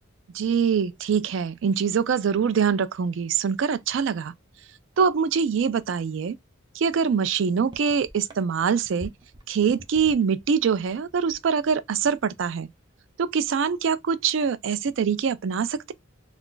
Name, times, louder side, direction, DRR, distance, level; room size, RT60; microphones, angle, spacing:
voice 1, 0.3-4.3 5.0-6.4 6.7-9.1 9.5-12.7 13.2-15.9, right 6 dB, 70° right, 0.4 m, -24 dB
sound 1, 7.2-7.3 7.6-10.4 10.7-11.8 12.1-12.4, right 1 dB, 20° right, 0.5 m, -44 dB
2.3 x 2.3 x 3.7 m
head